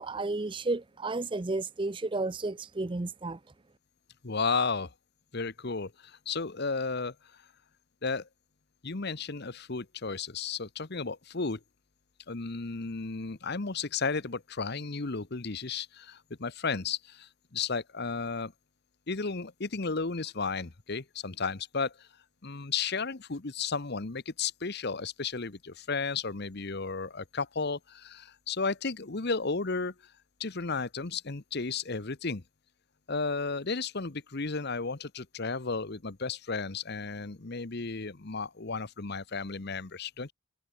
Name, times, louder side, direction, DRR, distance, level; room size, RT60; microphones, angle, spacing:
voice 1, 0.0-3.4, right 2 dB, 25° right, 0.5 m, -32 dB
voice 2, 4.2-4.9 5.3-7.1 8.0-8.3 8.8-11.6 12.3-18.5 19.1-22.1 22.4-29.9 30.4-32.4 33.1-40.3, left 4 dB, 50° left, 1.0 m, -33 dB
head